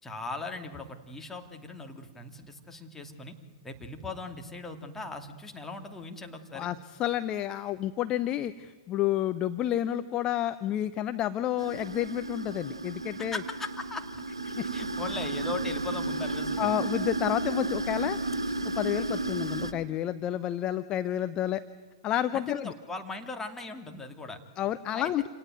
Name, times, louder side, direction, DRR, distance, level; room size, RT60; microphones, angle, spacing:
voice 1, 0.0-3.3 3.6-6.7 13.3-14.0 14.7-16.7 22.3-24.4 24.9-25.1, left 3 dB, 10° left, 4 dB, 2.6 m, -39 dB
voice 2, 6.5-13.4 14.6-14.7 16.6-18.2 18.8-21.6 22.0-22.7 24.6-25.3, left 12 dB, 30° left, 11 dB, 0.8 m, -30 dB
sound 1, 11.6-19.7, right 2 dB, 85° right, 1.5 m, -33 dB
27.5 x 18.0 x 9.2 m, 1.4 s
figure-of-eight pair, 105°, 3 cm